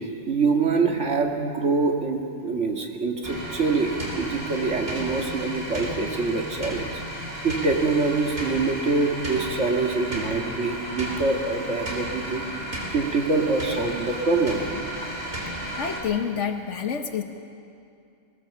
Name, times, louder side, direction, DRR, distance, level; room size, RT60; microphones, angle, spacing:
voice 1, 0.3-6.9 7.4-12.4 12.9-14.6, right 3 dB, 65° right, 2 dB, 2.2 m, -25 dB
sound 1, 3.2-16.0, equal, 50° right, 3.8 m, -33 dB
voice 2, 15.8-17.2, left 7 dB, 70° left, 6 dB, 1.3 m, -28 dB
20.5 x 19.5 x 7.2 m, 2.5 s
omnidirectional pair, 1.3 m